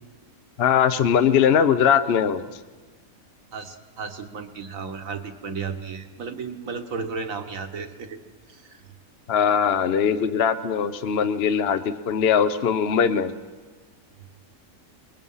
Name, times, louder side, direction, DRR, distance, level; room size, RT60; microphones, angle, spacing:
voice 1, 0.6-2.4 9.3-13.3, left 7 dB, 50° left, 11 dB, 0.9 m, -21 dB
voice 2, 3.5-8.2 8.5-8.8 10.8-10.9 14.2-14.3, right 5 dB, 70° right, 6 dB, 1.8 m, -34 dB
28.5 x 21.0 x 5.6 m, 1.3 s
omnidirectional pair, 1.5 m